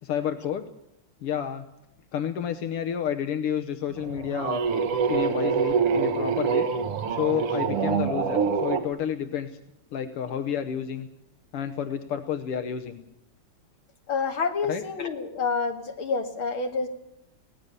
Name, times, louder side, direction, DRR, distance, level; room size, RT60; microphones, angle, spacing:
voice 1, 0.0-0.7 1.2-1.7 2.1-4.6 5.1-6.7 7.1-9.6 9.9-11.1 11.5-13.0 14.7-14.8, left 9 dB, 85° left, 7 dB, 2.0 m, -30 dB
sound 1, 4.0-8.9, right 6 dB, 85° right, 2.4 m, -25 dB
voice 2, 14.1-16.9, left 4 dB, 65° left, 4 dB, 2.9 m, -28 dB
24.0 x 18.0 x 6.8 m, 0.82 s
omnidirectional pair, 2.4 m